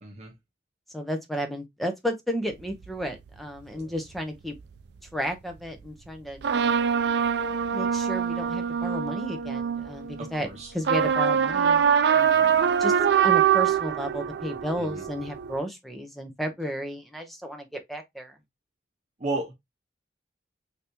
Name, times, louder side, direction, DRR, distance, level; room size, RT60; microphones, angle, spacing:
voice 1, 0.0-0.3 10.2-10.7 14.8-15.0 19.2-19.5, right 2 dB, 40° right, 0.8 m, -33 dB
voice 2, 0.9-4.6 5.1-6.5 7.7-10.5 10.7-11.9 12.1-12.9 13.2-18.4, equal, ahead, 0.6 m, -33 dB
sound 1, 2.6-3.0 4.2-4.3 6.4-10.4 10.8-15.6, right 7 dB, 70° right, 0.3 m, -24 dB
3.4 x 2.7 x 2.8 m
head